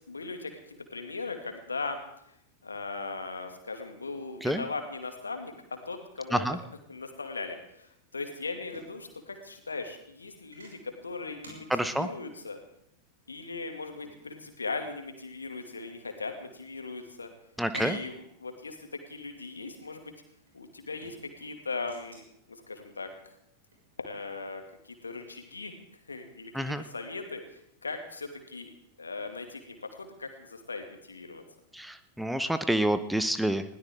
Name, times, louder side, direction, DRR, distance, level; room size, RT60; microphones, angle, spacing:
voice 1, 0.1-2.0 2.6-6.5 6.9-12.6 13.3-17.3 17.8-20.1 20.5-23.1 24.0-25.7 26.1-28.7 29.0-31.4, left 3 dB, 75° left, 5 dB, 2.2 m, -39 dB
sound 1, 7.8-24.4, right 1 dB, 70° right, 6.0 m, -50 dB
voice 2, 11.7-12.1 17.6-18.0 26.5-26.8 31.7-33.6, right 1 dB, ahead, 11 dB, 0.9 m, -28 dB
20.5 x 16.5 x 3.7 m, 0.75 s
figure-of-eight pair, 90°, 0 cm